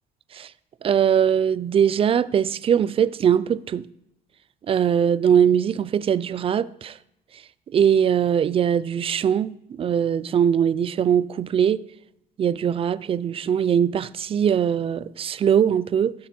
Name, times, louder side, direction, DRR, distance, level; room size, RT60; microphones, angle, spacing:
voice 1, 0.8-3.9 4.7-7.0 7.7-11.8 12.4-16.1, right 8 dB, 35° right, 0.4 m, -21 dB
13.5 x 6.9 x 4.4 m
cardioid pair, 110°, 17 cm